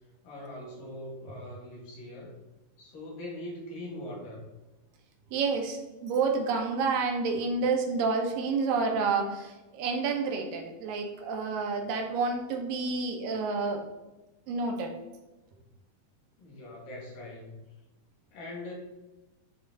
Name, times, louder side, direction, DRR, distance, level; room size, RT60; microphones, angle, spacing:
voice 1, 0.2-2.4 2.8-4.5 16.4-17.6 18.3-18.7, left 1 dB, 65° left, -2 dB, 3.8 m, -41 dB
voice 2, 5.3-13.8 14.5-14.9, right 4 dB, 75° right, 3 dB, 2.6 m, -29 dB
11.0 x 3.9 x 4.0 m, 1.1 s
omnidirectional pair, 4.2 m